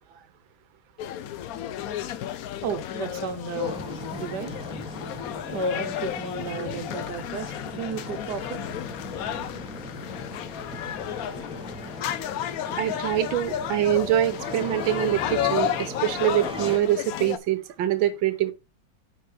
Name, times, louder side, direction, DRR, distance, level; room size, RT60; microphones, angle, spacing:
sound 1, 1.0-17.4, left 11 dB, 70° left, 0.8 m, -32 dB
voice 1, 2.6-3.8 4.1-4.6 5.5-8.7 12.7-12.8, right 6 dB, 65° right, 1.5 m, -34 dB
Engine starting, 3.6-16.8, equal, 5° right, 0.9 m, -39 dB
voice 2, 12.7-18.5, right 12 dB, 85° right, 1.5 m, -24 dB
9.3 x 5.5 x 3.3 m
omnidirectional pair, 2.1 m